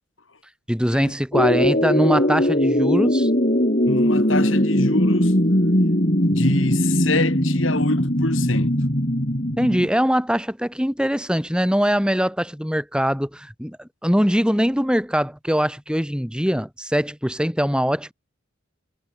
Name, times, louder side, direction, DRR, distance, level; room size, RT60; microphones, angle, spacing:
voice 1, 0.7-3.3 9.6-18.1, equal, 5° right, 6.1 m, -22 dB
sound 1, 1.3-9.9, equal, 40° left, 5.2 m, -20 dB
voice 2, 3.9-5.3 6.3-8.8, left 2 dB, 75° left, 6.0 m, -26 dB
head